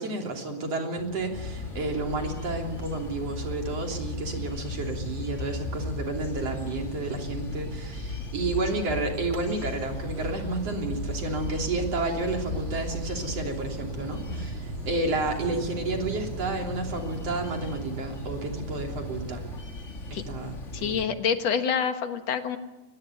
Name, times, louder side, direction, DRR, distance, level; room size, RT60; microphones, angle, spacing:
voice 1, 0.0-19.4 20.1-21.0, right 2 dB, 55° right, 2 dB, 4.3 m, -31 dB
sound 1, 1.0-9.9, right 2 dB, 25° right, 1.1 m, -45 dB
sound 2, 1.3-21.0, left 2 dB, 25° left, 1.9 m, -37 dB
sound 3, 9.7-19.6, right 2 dB, 90° right, 4.1 m, -40 dB
voice 2, 20.7-22.6, left 7 dB, 65° left, 7 dB, 2.5 m, -27 dB
23.5 x 20.0 x 9.4 m, 1.1 s
omnidirectional pair, 3.4 m